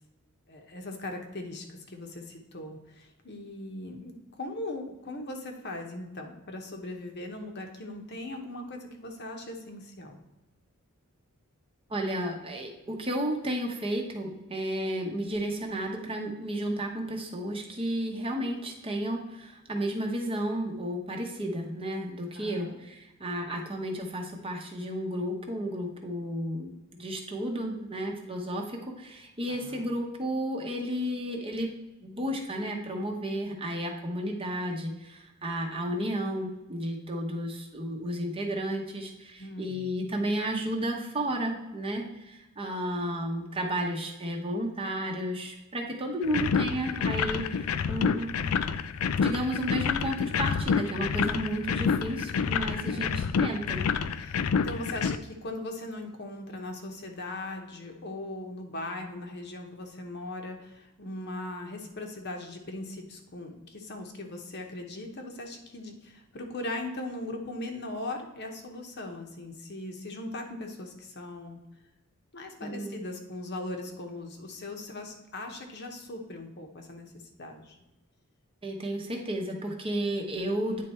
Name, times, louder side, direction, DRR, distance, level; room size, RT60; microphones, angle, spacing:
voice 1, 0.5-10.2 22.3-22.8 29.6-29.9 39.4-39.9 52.9-53.3 54.1-71.6 72.3-77.1 77.4-77.8, left 2 dB, 50° left, 3 dB, 1.0 m, -39 dB
voice 2, 11.9-31.7 32.0-48.4 49.2-53.9 72.6-73.0 78.6-80.8, right 1 dB, 25° right, 2 dB, 0.9 m, -32 dB
sound 1, 46.2-55.2, left 6 dB, 70° left, 0.4 m, -28 dB
9.4 x 3.4 x 4.3 m, 1.0 s
head